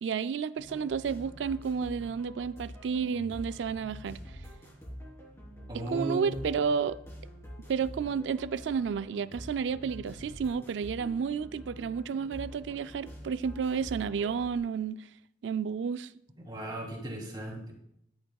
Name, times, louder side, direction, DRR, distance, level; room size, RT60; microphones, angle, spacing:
voice 1, 0.0-4.2 5.7-7.0 7.7-15.0 15.4-16.1, right 6 dB, 85° right, 0.4 m, -31 dB
sound 1, 0.6-14.6, equal, 15° left, 3.6 m, -46 dB
voice 2, 5.7-6.4 16.4-17.7, right 2 dB, 25° right, 3.1 m, -36 dB
14.0 x 10.5 x 2.3 m
head